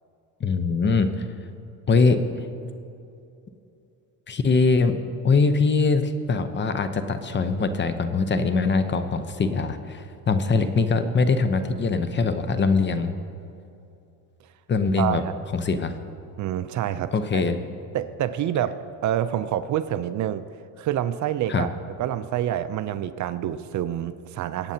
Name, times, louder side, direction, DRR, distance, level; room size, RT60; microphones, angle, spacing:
voice 1, 0.4-1.2 1.9-2.2 4.3-4.9 5.2-13.1 14.7-15.2 15.5-15.9 17.1-17.6 21.5-21.7, left 4 dB, 30° left, 9 dB, 0.8 m, -22 dB
voice 2, 15.0-15.4 16.4-17.4 17.9-18.7 19.0-20.4 20.8-21.7 22.0-24.7, right 11 dB, 50° right, 12 dB, 0.5 m, -27 dB
23.0 x 8.9 x 2.8 m, 2.7 s
cardioid pair, 105°, 37 cm